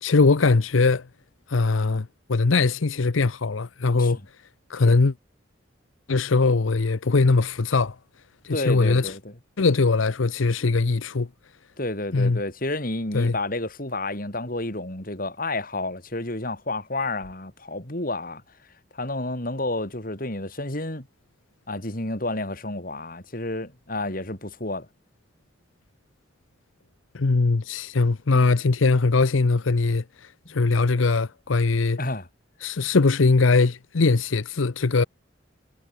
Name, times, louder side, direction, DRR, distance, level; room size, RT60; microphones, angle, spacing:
voice 1, 0.0-1.1 1.5-4.2 4.7-5.1 6.1-8.0 8.4-9.1 9.6-11.3 12.1-12.4 13.1-13.4 27.1-32.0 32.6-35.0, left 3 dB, 90° left, 0.8 m, -21 dB
voice 2, 8.5-9.3 11.8-18.4 18.9-21.1 21.7-24.9 32.0-32.3, left 2 dB, 45° left, 4.1 m, -30 dB
head